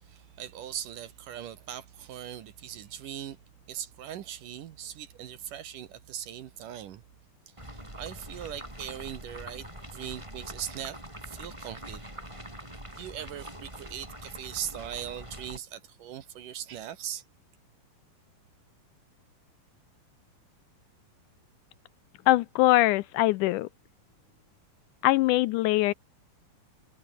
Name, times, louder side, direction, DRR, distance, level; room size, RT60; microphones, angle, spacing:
voice 1, 0.0-3.4 3.7-7.0 7.7-11.0 11.2-12.0 13.0-17.2, right 10 dB, 70° right, 2.8 m, -40 dB
sound 1, 7.6-15.6, right 1 dB, 5° right, 7.9 m, -44 dB
voice 2, 22.3-23.7 25.0-25.9, left 18 dB, 85° left, 1.8 m, -22 dB
omnidirectional pair, 4.2 m